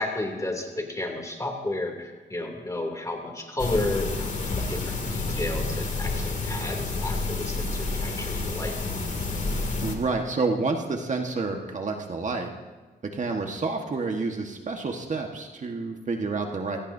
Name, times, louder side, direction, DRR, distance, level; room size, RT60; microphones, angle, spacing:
voice 1, 0.0-8.7, left 2 dB, 20° left, 2 dB, 2.9 m, -32 dB
sound 1, 3.6-9.9, left 3 dB, 45° left, 2.5 m, -29 dB
voice 2, 9.8-12.5 13.1-16.8, right 3 dB, 40° right, 3 dB, 1.5 m, -29 dB
24.0 x 17.0 x 2.7 m, 1.3 s
cardioid pair, 90°, 18 cm